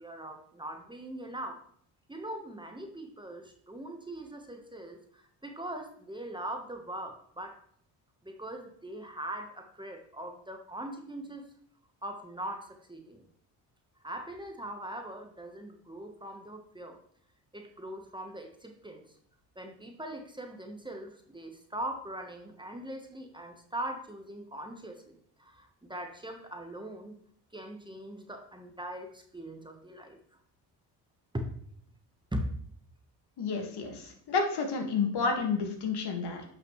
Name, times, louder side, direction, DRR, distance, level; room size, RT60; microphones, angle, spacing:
voice 1, 0.0-1.6 2.1-7.6 8.2-11.5 12.0-13.2 14.0-17.0 17.5-19.2 19.5-27.2 27.5-30.2 31.3-31.5 32.3-32.5, right 1 dB, 10° right, 4 dB, 1.1 m, -41 dB
voice 2, 33.4-36.4, left 4 dB, 60° left, 3 dB, 1.9 m, -30 dB
9.3 x 5.8 x 3.1 m, 0.63 s
supercardioid pair, 80°, 45 cm